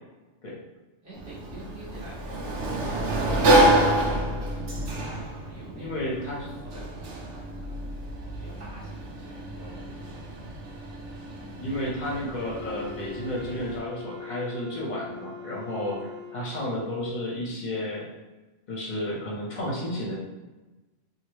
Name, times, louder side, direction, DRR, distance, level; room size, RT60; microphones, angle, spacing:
voice 1, 1.0-2.5 4.4-7.9 8.4-10.2, right 2 dB, 15° right, -10 dB, 1.3 m, -46 dB
Sliding door, 1.1-13.8, right 1 dB, 85° right, 1.0 m, -28 dB
voice 2, 5.8-6.5 11.6-18.0 18.7-20.2, left 1 dB, 45° left, -3 dB, 0.9 m, -32 dB
Wind instrument woodwind instrument, 12.3-16.6, left 5 dB, 45° right, 0.4 m, -41 dB
3.1 x 2.7 x 2.9 m, 1.2 s
omnidirectional pair, 1.2 m